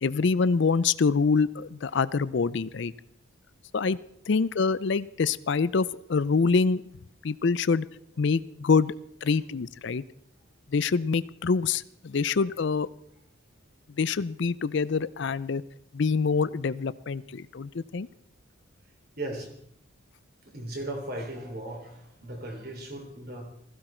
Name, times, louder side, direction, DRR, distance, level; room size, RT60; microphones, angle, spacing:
voice 1, 0.0-2.9 3.7-4.0 4.3-6.8 7.2-7.9 8.2-8.9 9.2-10.0 10.7-12.9 14.0-15.6 15.9-18.1, left 4 dB, 55° left, 17 dB, 0.5 m, -25 dB
voice 2, 19.2-19.5 20.5-23.4, right 1 dB, 50° right, 2 dB, 3.3 m, -37 dB
16.0 x 15.0 x 4.4 m, 0.68 s
head